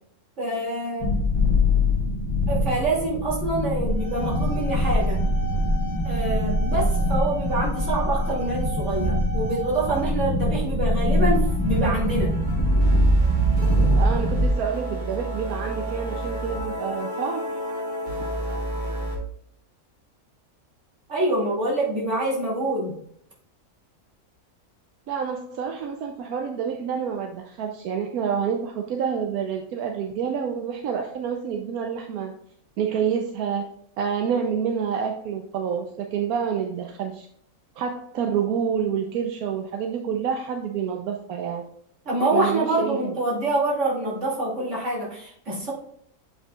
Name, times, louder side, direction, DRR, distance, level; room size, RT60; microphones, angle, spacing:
voice 1, 0.4-1.1 2.5-5.2 6.0-12.3 21.1-22.9 42.1-45.7, right 2 dB, 55° right, -5 dB, 2.8 m, -26 dB
sound 1, 1.0-14.5, left 1 dB, 25° left, 0.6 m, -23 dB
sound 2, 3.8-10.0, right 1 dB, 40° left, 1.4 m, -37 dB
sound 3, 10.6-10.7 11.0-11.1 11.3-19.2, right 2 dB, 35° right, 1.3 m, -31 dB
voice 2, 14.0-17.5 25.1-32.3 32.8-33.6 34.0-37.3 37.8-41.6 42.3-43.2, right 7 dB, 85° right, 3 dB, 1.1 m, -28 dB
7.6 x 5.4 x 2.3 m, 0.66 s
omnidirectional pair, 1.5 m